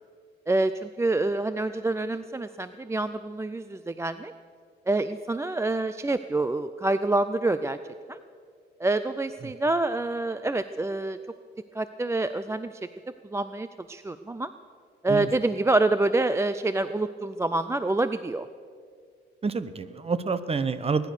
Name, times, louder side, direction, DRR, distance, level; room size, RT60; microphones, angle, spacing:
voice 1, 0.5-4.3 4.9-7.8 8.1-8.2 8.8-11.2 11.7-12.7 13.3-14.5 15.0-18.5, right 2 dB, 15° right, 12 dB, 0.4 m, -27 dB
voice 2, 19.4-21.1, right 4 dB, 30° right, 14 dB, 1.0 m, -28 dB
20.5 x 10.5 x 6.6 m, 2.1 s
cardioid pair, 90°, 20 cm